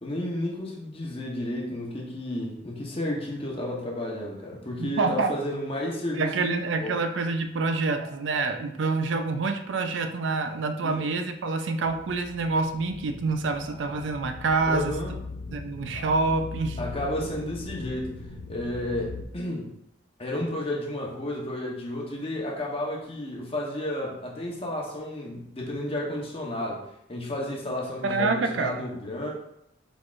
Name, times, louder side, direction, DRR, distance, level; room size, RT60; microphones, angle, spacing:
voice 1, 0.0-6.9 10.8-10.9 14.7-15.1 16.8-18.1 18.5-19.7 20.2-26.8 27.1-29.3, left 1 dB, 30° left, -2 dB, 0.9 m, -32 dB
voice 2, 4.8-5.3 6.1-15.0 15.5-16.8 28.0-28.9, right 3 dB, 75° right, 7 dB, 0.4 m, -27 dB
sound 1, 11.8-19.3, left 3 dB, 85° left, 0.5 m, -40 dB
4.7 x 4.0 x 2.4 m, 0.80 s
head